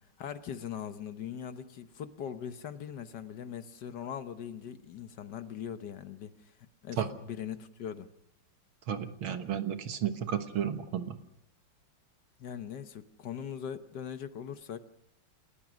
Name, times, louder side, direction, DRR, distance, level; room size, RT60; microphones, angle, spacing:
voice 1, 0.2-8.1 12.4-14.9, left 8 dB, 60° left, 11 dB, 1.4 m, -41 dB
voice 2, 8.9-11.2, right 9 dB, 80° right, 9 dB, 2.2 m, -32 dB
29.0 x 14.5 x 6.2 m, 0.85 s
omnidirectional pair, 2.3 m